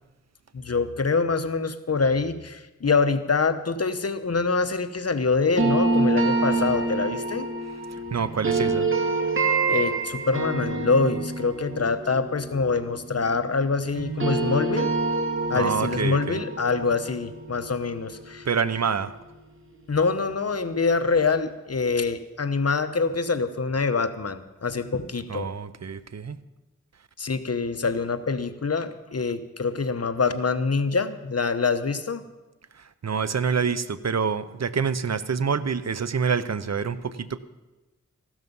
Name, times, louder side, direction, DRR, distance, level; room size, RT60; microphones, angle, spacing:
voice 1, 0.5-7.5 9.4-14.9 15.5-18.5 19.9-25.5 27.2-32.2, left 4 dB, 55° left, 10 dB, 1.0 m, -25 dB
sound 1, 5.6-13.7 14.0-18.9, right 3 dB, 40° right, 2.3 m, -27 dB
voice 2, 8.1-8.9 15.5-16.4 18.4-19.1 25.3-26.4 32.7-37.4, right 6 dB, 60° right, 14 dB, 0.8 m, -27 dB
15.0 x 12.5 x 5.5 m, 1.1 s
wide cardioid pair, 60°, 30 cm